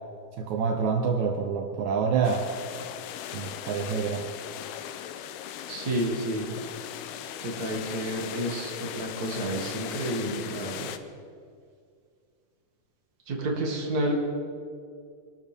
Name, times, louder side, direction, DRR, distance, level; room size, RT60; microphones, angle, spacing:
voice 1, 0.4-2.5 3.3-4.3, right 6 dB, 85° right, 3 dB, 1.6 m, -27 dB
sound 1, 2.2-11.0, left 10 dB, 85° left, 2.5 m, -38 dB
voice 2, 5.7-6.5 7.4-10.9 13.3-14.1, right 1 dB, 35° right, -1 dB, 1.7 m, -30 dB
24.5 x 12.5 x 3.6 m, 2.2 s
omnidirectional pair, 4.6 m